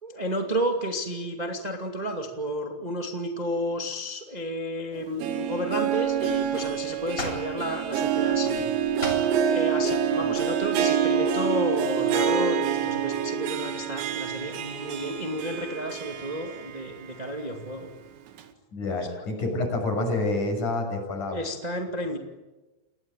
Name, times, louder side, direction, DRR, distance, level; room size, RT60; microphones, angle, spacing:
voice 1, 0.0-8.7 9.5-17.9 19.1-19.2 21.3-22.2, equal, 40° right, 3 dB, 0.6 m, -32 dB
Harp, 4.9-17.1 17.4-17.5 18.4-18.5, right 8 dB, 75° right, 4.2 m, -27 dB
sound 1, 6.0-11.4, left 1 dB, 15° left, 7.8 m, -42 dB
voice 2, 18.7-21.4, left 2 dB, 40° left, 4 dB, 7.9 m, -28 dB
29.5 x 20.5 x 9.1 m, 1.1 s
omnidirectional pair, 5.5 m